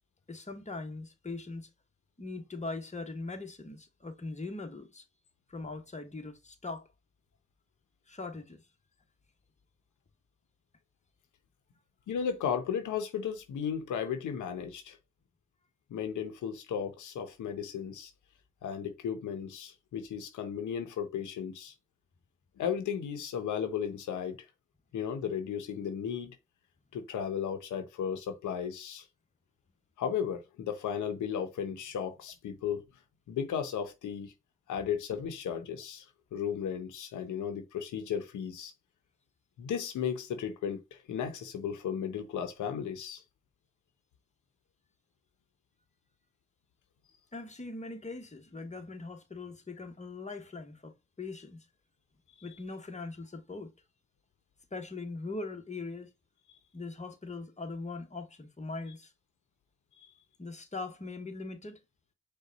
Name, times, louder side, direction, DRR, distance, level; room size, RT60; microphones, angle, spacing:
voice 1, 0.3-1.7 2.2-5.0 5.5-6.9 8.1-8.6 47.3-51.7 52.4-53.7 54.7-56.1 56.7-59.1 60.4-61.8, left 3 dB, 25° left, 1.2 m, -41 dB
voice 2, 12.1-15.0 15.9-18.1 18.6-21.7 22.6-24.4 24.9-26.4 26.9-29.1 30.0-32.8 33.3-34.3 34.7-38.7 39.6-43.2 52.4-52.5 60.0-60.1, left 8 dB, 90° left, 0.7 m, -35 dB
5.2 x 2.4 x 3.9 m
supercardioid pair, 50°, 29 cm